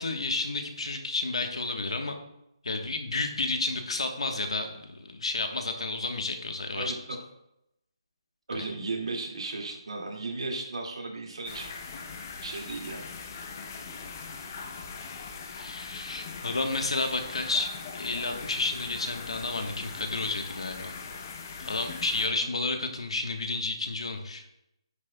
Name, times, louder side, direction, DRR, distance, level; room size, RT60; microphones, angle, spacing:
voice 1, 0.0-2.2 2.6-6.9 8.5-8.6 15.5-20.9 21.6-24.4, left 3 dB, 85° left, 5 dB, 1.2 m, -31 dB
voice 2, 6.8-7.2 8.5-11.8 12.4-13.1 22.2-22.5, right 3 dB, 80° right, 0 dB, 2.2 m, -35 dB
sound 1, 11.5-22.3, left 5 dB, 30° left, 0.7 m, -41 dB
9.5 x 6.4 x 2.3 m, 0.82 s
hypercardioid pair, 170°, 3 cm